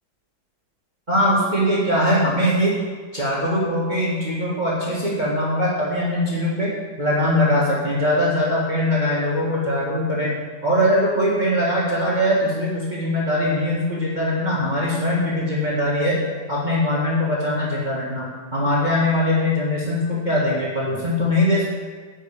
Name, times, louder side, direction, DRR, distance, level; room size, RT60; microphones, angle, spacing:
voice 1, 1.1-2.8 3.1-6.7 7.0-16.2 16.5-21.6, left 1 dB, 25° right, -7 dB, 1.8 m, -21 dB
10.0 x 5.5 x 8.2 m, 1.5 s
omnidirectional pair, 1.9 m